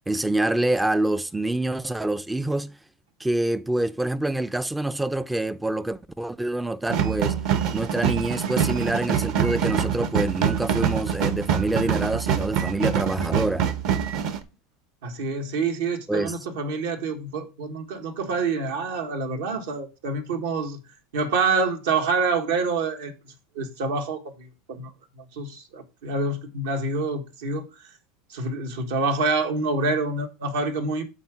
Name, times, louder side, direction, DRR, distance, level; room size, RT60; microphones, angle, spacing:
voice 1, 0.1-2.8 3.2-7.4 7.7-13.6 16.1-16.4, right 1 dB, 5° right, 0.3 m, -26 dB
sound 1, 6.9-14.4, right 8 dB, 55° right, 0.9 m, -25 dB
voice 2, 15.0-20.8 21.1-27.9 28.3-31.0, right 4 dB, 80° right, 1.5 m, -27 dB
8.6 x 4.0 x 4.8 m
supercardioid pair, 125°, 0 cm